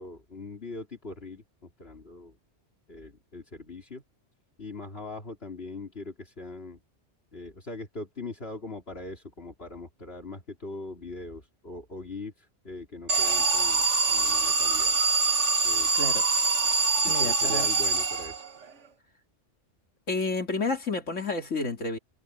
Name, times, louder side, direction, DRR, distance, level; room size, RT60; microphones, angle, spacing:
voice 1, 0.0-2.4 2.9-4.0 4.6-6.8 7.3-14.9 15.6-15.9 17.0-18.4, left 2 dB, 55° left, 3.7 m, -41 dB
Alarm, 13.1-18.6, right 4 dB, 75° right, 1.6 m, -24 dB
voice 2, 15.9-16.3 17.1-17.7 20.1-22.0, left 3 dB, 85° left, 3.0 m, -30 dB
omnidirectional pair, 1.2 m